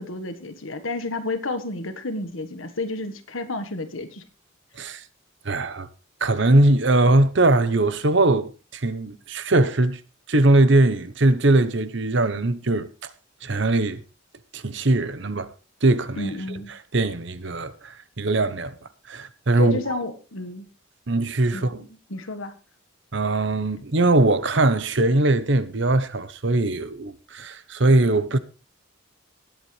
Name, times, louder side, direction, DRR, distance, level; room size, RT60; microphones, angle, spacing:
voice 1, 0.0-4.2 16.2-16.7 19.6-20.7 21.5-22.5, left 2 dB, 75° left, 1.5 m, -31 dB
voice 2, 5.4-5.9 6.2-10.0 10.3-12.9 13.4-14.0 14.5-15.5 15.8-16.3 16.7-18.7 19.1-19.8 21.1-21.8 23.1-28.4, right 2 dB, 60° right, 1.0 m, -21 dB
19.5 x 8.2 x 3.3 m
head